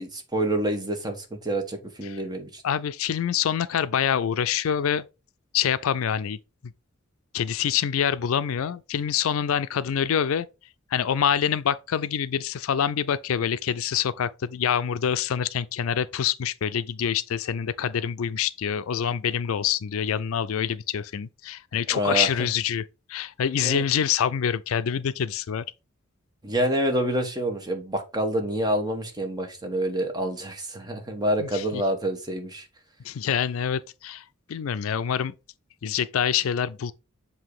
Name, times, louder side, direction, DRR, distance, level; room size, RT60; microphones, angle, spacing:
voice 1, 0.0-2.6 21.9-22.3 23.6-23.8 26.4-32.6, right 1 dB, 20° right, 1.2 m, -27 dB
voice 2, 2.6-5.0 5.5-6.4 7.3-10.5 10.9-25.6 31.4-31.8 33.0-35.3 35.8-36.9, left 8 dB, 75° left, 0.4 m, -26 dB
7.5 x 2.8 x 4.8 m
head